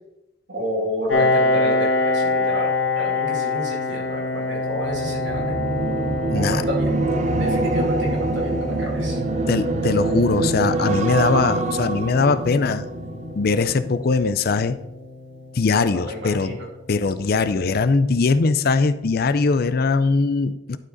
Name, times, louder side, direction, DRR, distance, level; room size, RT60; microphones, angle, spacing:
voice 1, 0.5-5.6 6.3-9.2 15.8-16.7, equal, 65° right, -1 dB, 2.4 m, -31 dB
Piano, 1.1-16.4, left 2 dB, 70° left, 1.2 m, -26 dB
sound 1, 4.9-14.2 14.6-14.9, right 2 dB, 35° right, 0.5 m, -25 dB
voice 2, 6.3-6.6 9.5-12.9 13.4-14.8 15.5-16.6 16.9-20.8, left 4 dB, 55° left, 13 dB, 0.5 m, -21 dB
11.5 x 4.9 x 4.0 m, 0.90 s
head